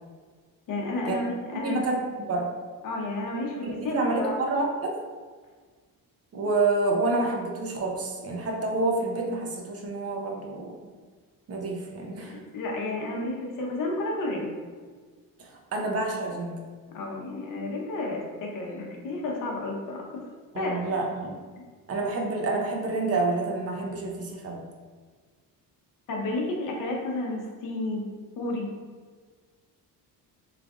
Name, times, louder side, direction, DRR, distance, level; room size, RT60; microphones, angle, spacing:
voice 1, 0.7-1.8 2.8-3.6 3.8-4.3 12.2-12.3 12.5-14.5 16.9-20.3 20.6-20.8 26.1-28.1 28.4-28.7, left 2 dB, 60° left, -1 dB, 0.8 m, -31 dB
voice 2, 1.5-2.5 3.6-5.0 6.3-10.7 11.5-12.4 15.4-16.6 20.5-21.4 21.9-24.6, right 2 dB, 40° right, 0 dB, 0.6 m, -28 dB
3.3 x 2.4 x 3.5 m, 1.5 s
cardioid pair, 145°, 36 cm